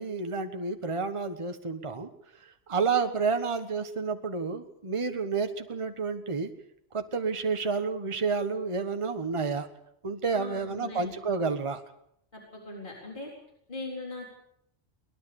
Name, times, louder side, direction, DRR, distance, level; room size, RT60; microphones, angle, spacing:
voice 1, 0.0-2.1 2.4-6.5 6.9-9.7 10.0-11.8, right 4 dB, 25° right, 7 dB, 1.2 m, -30 dB
voice 2, 10.3-11.2 12.3-13.3 13.7-14.3, left 3 dB, 45° left, -1 dB, 4.4 m, -40 dB
22.5 x 18.5 x 7.0 m, 0.74 s
omnidirectional pair, 1.2 m